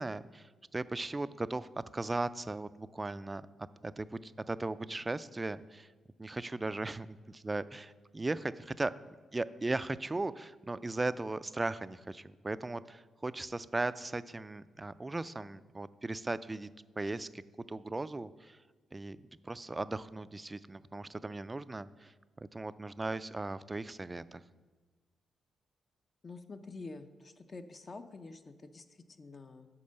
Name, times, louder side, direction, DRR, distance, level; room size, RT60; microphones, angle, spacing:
voice 1, 0.0-3.5 3.8-5.9 6.2-8.9 9.3-16.7 17.0-18.6 18.9-19.2 19.4-24.4, right 2 dB, 25° right, 15 dB, 0.3 m, -37 dB
voice 2, 26.2-29.7, left 3 dB, 40° left, 7 dB, 0.5 m, -48 dB
8.6 x 4.4 x 6.6 m, 1.3 s
cardioid pair, 70°, 0 cm